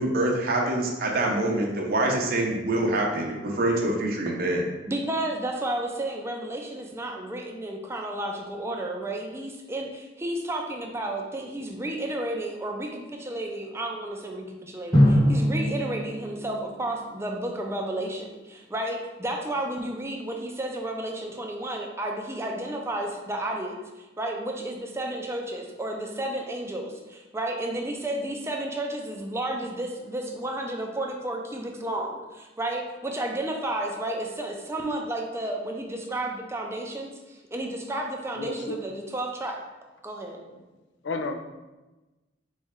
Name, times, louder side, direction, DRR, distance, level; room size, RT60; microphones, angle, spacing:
voice 1, 0.0-4.6, right 1 dB, 55° right, 0 dB, 0.6 m, -25 dB
voice 2, 4.9-39.6 40.0-40.4, right 1 dB, 15° right, 1 dB, 0.5 m, -32 dB
Drum, 14.9-17.6, equal, 25° left, 1.4 m, -23 dB
voice 3, 38.4-38.8 40.5-40.6 41.0-41.3, left 3 dB, 75° left, 6 dB, 0.5 m, -32 dB
4.1 x 3.2 x 3.6 m, 1.1 s
head